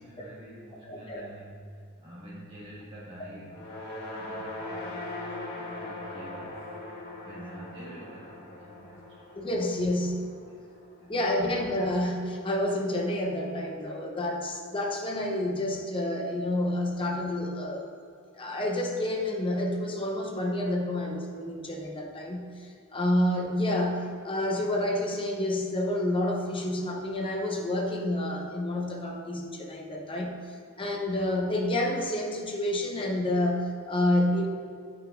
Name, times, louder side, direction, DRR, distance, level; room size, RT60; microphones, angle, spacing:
voice 1, 0.0-3.7 4.1-5.1 5.6-6.7 7.2-9.4 10.5-11.2, right 1 dB, 25° right, -8 dB, 1.7 m, -47 dB
voice 2, 0.9-1.3 9.4-10.3 11.1-17.9 18.4-30.4 30.8-34.5, left 1 dB, 25° left, 0 dB, 0.7 m, -29 dB
sound 1, 3.4-11.8, left 2 dB, 50° left, 1.5 m, -41 dB
9.0 x 6.0 x 2.5 m, 2.3 s
head